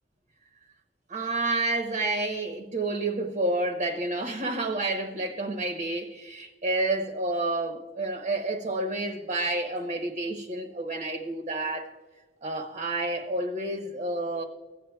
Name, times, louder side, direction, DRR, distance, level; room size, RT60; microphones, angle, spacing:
voice 1, 1.1-11.9 12.4-14.4, right 2 dB, 35° right, 0.8 m, -29 dB
16.0 x 9.0 x 2.3 m
head